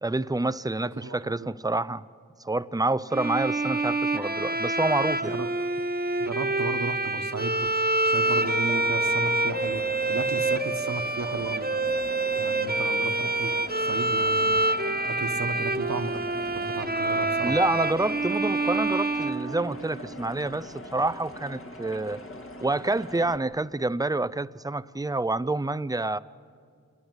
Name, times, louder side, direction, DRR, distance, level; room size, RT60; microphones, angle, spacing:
voice 1, 0.0-2.0 2.4-5.4 17.4-22.2 22.6-26.2, right 2 dB, 10° right, 0.6 m, -28 dB
voice 2, 0.8-1.5 5.2-5.5 6.2-7.7 8.0-11.7 12.4-14.6 15.0-16.2 16.5-17.6, right 4 dB, 60° right, 1.5 m, -34 dB
Bowed string instrument, 3.1-20.1, right 2 dB, 30° right, 1.4 m, -27 dB
sound 1, 8.1-23.4, left 1 dB, 45° left, 2.1 m, -42 dB
28.0 x 21.5 x 8.1 m
wide cardioid pair, 65°, 31 cm